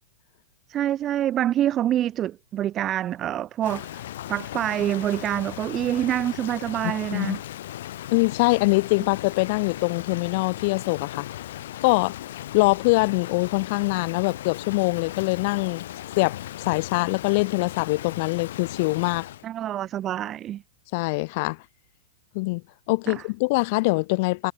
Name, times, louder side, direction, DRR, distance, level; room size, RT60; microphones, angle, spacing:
voice 1, 0.7-7.4 19.4-20.6 23.1-23.2, right 11 dB, 25° right, 1.1 m, -26 dB
Rain, 3.6-19.5, left 13 dB, 65° left, 2.7 m, -37 dB
voice 2, 6.8-7.4 8.1-11.3 11.8-12.1 12.5-15.8 16.2-19.3 20.9-21.6 22.3-22.6 22.9-24.5, left 26 dB, 45° left, 1.3 m, -23 dB
hypercardioid pair, 150°, 0 cm